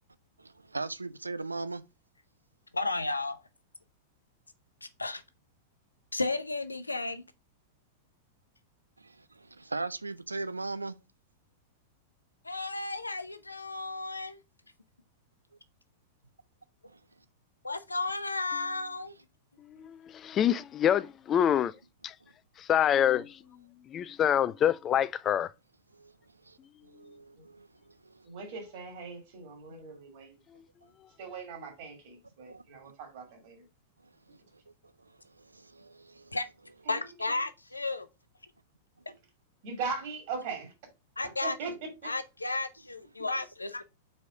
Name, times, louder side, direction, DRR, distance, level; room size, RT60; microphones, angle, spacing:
voice 1, 0.4-1.8 9.0-11.0 22.2-22.3 25.9-26.6 26.8-28.3 32.4-32.9 34.3-34.6 35.0-36.4, right 3 dB, 80° right, 0.5 m, -40 dB
voice 2, 2.7-3.4 4.8-5.2 6.1-7.2 12.4-14.4 17.6-19.1 19.8-19.9 36.3-36.4 36.9-38.1 41.2-41.6 42.0-43.8, left 3 dB, 80° left, 0.6 m, -33 dB
voice 3, 19.7-21.7 22.0-22.1 22.6-23.4 23.9-25.5, left 10 dB, 25° left, 0.3 m, -26 dB
voice 4, 28.2-30.4 31.2-33.6 36.9-37.0 39.6-40.7 41.2-42.1, right 4 dB, 45° right, 2.5 m, -39 dB
4.7 x 4.2 x 4.9 m
figure-of-eight pair, 95°, 0 cm